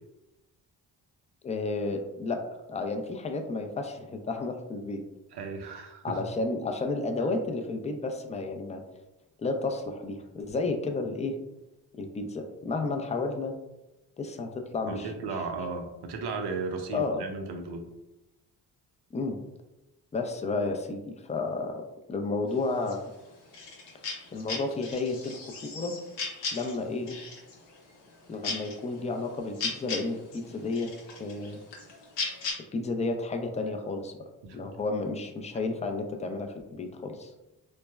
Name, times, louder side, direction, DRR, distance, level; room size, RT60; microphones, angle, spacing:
voice 1, 1.4-2.4 2.7-5.0 6.0-8.8 9.4-11.4 11.9-13.5 14.2-15.1 16.9-17.2 19.1-19.4 20.1-21.8 22.1-23.0 24.3-26.0 26.5-27.2 28.3-30.9 31.2-31.6 32.7-34.1 34.5-37.3, left 3 dB, 20° left, 4 dB, 0.3 m, -32 dB
voice 2, 5.3-6.2 14.9-17.9 34.4-34.6, right 4 dB, 70° right, 4 dB, 0.6 m, -35 dB
sound 1, 22.5-32.5, left 4 dB, 85° left, 0.8 m, -38 dB
3.3 x 2.1 x 2.2 m, 0.97 s
cardioid pair, 65°, 42 cm